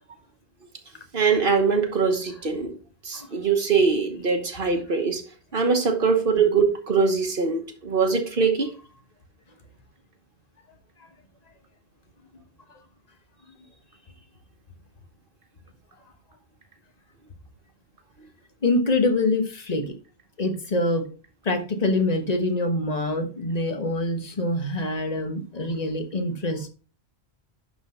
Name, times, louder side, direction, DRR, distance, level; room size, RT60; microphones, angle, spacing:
voice 1, 1.1-2.7 3.0-5.2 5.5-8.7, right 5 dB, 55° right, 1.2 m, -22 dB
voice 2, 18.6-19.9 20.4-21.1 21.4-26.7, left 2 dB, 40° left, 1.2 m, -25 dB
11.0 x 4.0 x 4.3 m
omnidirectional pair, 1.1 m